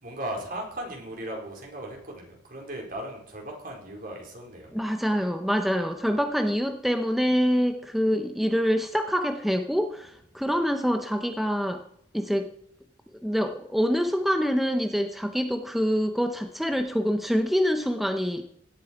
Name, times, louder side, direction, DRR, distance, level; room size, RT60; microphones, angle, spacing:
voice 1, 0.0-4.7, right 1 dB, 50° right, 0 dB, 4.5 m, -37 dB
voice 2, 4.7-11.8 12.1-12.5 13.2-18.4, equal, ahead, 6 dB, 0.7 m, -25 dB
17.5 x 12.0 x 4.6 m, 0.71 s
head